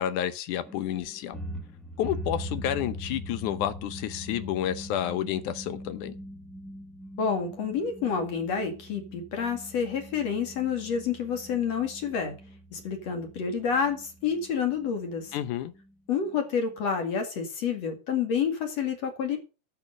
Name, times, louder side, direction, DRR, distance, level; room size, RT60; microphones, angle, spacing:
voice 1, 0.0-1.4 2.0-6.2 15.3-15.7, left 11 dB, 75° left, 2.3 m, -30 dB
sound 1, 0.6-16.8, equal, ahead, 0.6 m, -42 dB
voice 2, 7.2-12.3 12.7-15.3 16.1-19.4, left 6 dB, 55° left, 3.0 m, -29 dB
10.5 x 7.1 x 6.6 m
omnidirectional pair, 3.8 m